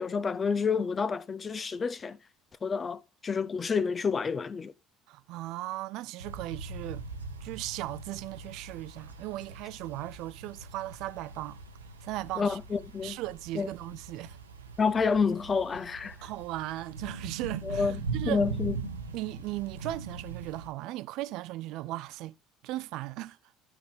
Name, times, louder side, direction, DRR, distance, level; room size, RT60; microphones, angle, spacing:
voice 1, 0.0-2.2 2.6-4.7 12.4-13.2 13.5-13.7 14.8-16.2 17.6-18.9, left 5 dB, 30° left, 0.9 m, -29 dB
voice 2, 5.1-7.1 7.4-11.6 12.0-12.6 13.0-14.4 16.2-18.4 19.1-22.3 22.6-23.4, right 16 dB, 60° right, 0.4 m, -37 dB
sound 1, 6.2-20.7, right 4 dB, 85° right, 1.0 m, -41 dB
12.5 x 5.4 x 3.6 m
figure-of-eight pair, 55°, 0 cm